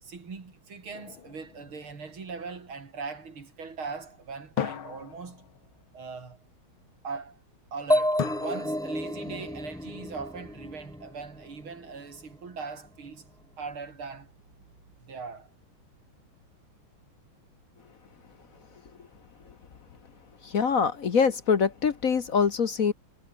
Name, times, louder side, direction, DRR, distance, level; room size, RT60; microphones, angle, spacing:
voice 1, 0.0-5.5 5.9-6.4 7.0-7.4 7.7-13.3 13.6-14.3 15.0-15.5, right 5 dB, 85° right, 4.4 m, -40 dB
sound 1, 0.9-2.5 4.6-5.9 8.2-9.3, left 9 dB, 80° left, 2.2 m, -37 dB
sound 2, 7.9-11.6, equal, ahead, 1.0 m, -30 dB
voice 2, 20.4-22.9, left 6 dB, 50° left, 1.4 m, -24 dB
omnidirectional pair, 2.2 m